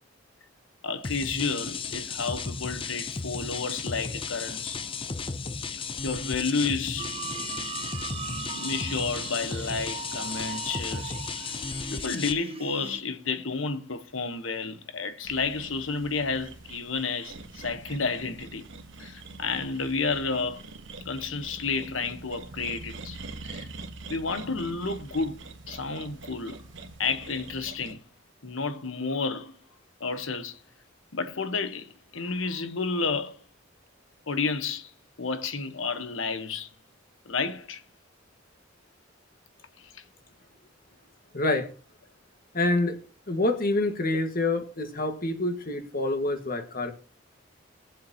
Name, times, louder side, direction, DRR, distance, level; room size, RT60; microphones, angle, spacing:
voice 1, 0.8-4.8 6.0-7.1 8.5-11.2 11.9-18.6 19.0-20.6 21.0-23.7 24.1-25.4 25.7-26.6 27.0-28.0 28.4-29.5 30.0-30.6 31.1-33.4 34.3-34.9 35.2-36.7 37.3-37.8 39.9-40.0, left 4 dB, 85° left, 1.2 m, -31 dB
sound 1, 1.0-12.3, left 4 dB, 25° left, 0.6 m, -34 dB
sound 2, 7.0-13.0, right 6 dB, 30° right, 0.6 m, -39 dB
sound 3, 15.2-27.9, right 3 dB, 65° right, 1.3 m, -44 dB
voice 2, 41.3-41.7 42.5-43.0 43.3-46.9, left 2 dB, 45° left, 1.8 m, -27 dB
21.0 x 7.6 x 3.0 m
head